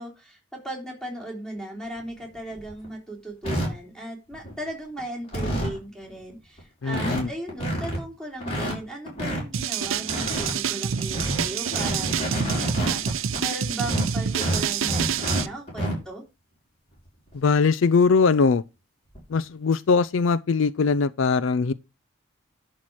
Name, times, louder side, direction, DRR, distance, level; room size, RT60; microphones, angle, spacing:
voice 1, 0.0-16.2, right 1 dB, 5° left, 3.2 m, -37 dB
sound 1, 2.0-2.1 2.5-2.9 3.4-3.7 4.3-4.7 5.0-5.1 5.3-5.8 6.3-6.4 6.6-6.7 6.9-7.2 7.5-8.0 8.4-9.4 9.8-10.5 11.0-13.4 13.8-15.4 15.7-15.9 17.3-17.4 17.8-17.9 19.1-19.3, right 1 dB, 30° left, 5.7 m, -28 dB
voice 2, 6.8-7.3 17.3-18.6 19.3-21.7, left 4 dB, 70° left, 0.4 m, -21 dB
sound 2, 9.5-15.5, right 8 dB, 80° right, 0.6 m, -27 dB
11.0 x 4.7 x 6.1 m
head